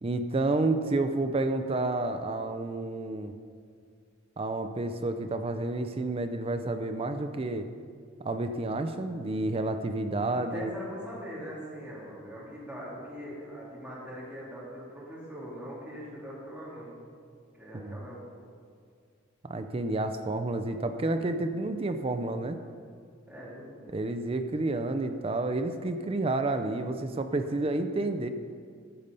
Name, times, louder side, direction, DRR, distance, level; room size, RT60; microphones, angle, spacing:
voice 1, 0.0-3.3 4.4-7.7 8.2-10.7 17.7-18.0 19.4-22.6 23.9-28.3, right 2 dB, 30° right, 9 dB, 0.5 m, -30 dB
voice 2, 10.2-16.9 17.5-18.3 22.6-22.7 23.3-24.0, equal, 5° right, -7 dB, 3.1 m, -42 dB
14.0 x 6.7 x 5.4 m, 2.1 s
head